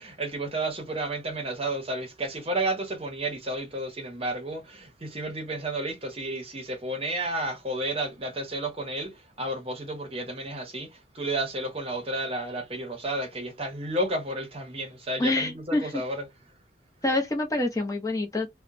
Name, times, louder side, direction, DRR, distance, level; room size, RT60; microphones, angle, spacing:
voice 1, 0.0-16.3, right 1 dB, 30° right, 0.7 m, -32 dB
voice 2, 15.2-16.0 17.0-18.5, left 2 dB, 20° left, 0.5 m, -26 dB
2.8 x 2.1 x 2.5 m
head